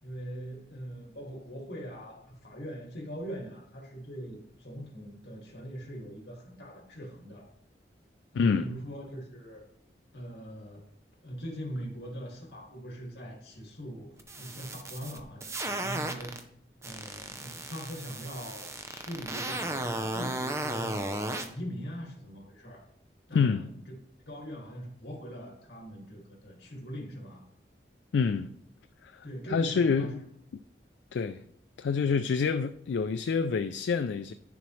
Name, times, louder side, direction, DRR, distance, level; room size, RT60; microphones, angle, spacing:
voice 1, 0.0-7.5 8.3-9.6 10.1-10.9 11.2-16.4 16.8-21.0 21.4-22.8 23.3-23.8 24.3-27.5 29.2-30.1, equal, 65° left, 2.3 m, -41 dB
voice 2, 8.3-8.8 23.3-23.7 28.1-28.5 29.0-29.2 29.5-30.2 31.1-31.4 31.8-34.3, left 5 dB, 80° left, 0.3 m, -27 dB
sound 1, 14.2-16.4 16.8-21.5, right 2 dB, 15° right, 0.6 m, -35 dB
10.5 x 7.0 x 3.2 m
head